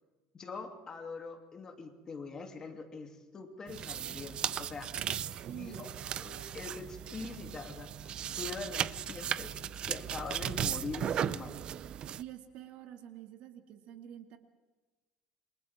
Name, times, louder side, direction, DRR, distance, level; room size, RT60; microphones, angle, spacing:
voice 1, 0.3-5.2 5.5-5.9 6.2-9.6 9.9-11.6, left 4 dB, 25° left, 3 dB, 3.0 m, -43 dB
sound 1, 3.7-12.2, right 9 dB, 40° right, 0.6 m, -37 dB
sound 2, 5.2-5.8 8.0-11.6, right 2 dB, 15° right, 7.5 m, -64 dB
voice 2, 5.4-5.9 12.2-14.4, right 11 dB, 60° right, 5 dB, 2.5 m, -47 dB
28.5 x 26.0 x 3.7 m, 1.2 s
cardioid pair, 130°, 2 cm